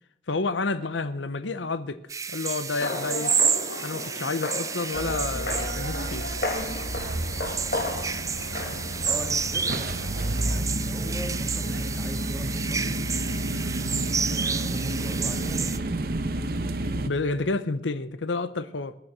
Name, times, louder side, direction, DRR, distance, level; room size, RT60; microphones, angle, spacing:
voice 1, 0.3-2.0 2.3-3.4 3.8-6.2 17.1-18.9, left 3 dB, 90° left, 0.8 m, -29 dB
sound 1, 2.1-15.8, right 6 dB, 20° right, 0.5 m, -31 dB
sound 2, 2.8-10.6, left 2 dB, 60° left, 2.1 m, -34 dB
sound 3, 4.9-17.1, right 1 dB, 55° right, 1.0 m, -31 dB
voice 2, 9.0-9.9 10.4-13.0 13.8-15.9, equal, 10° left, 2.2 m, -41 dB
21.0 x 9.2 x 6.2 m
head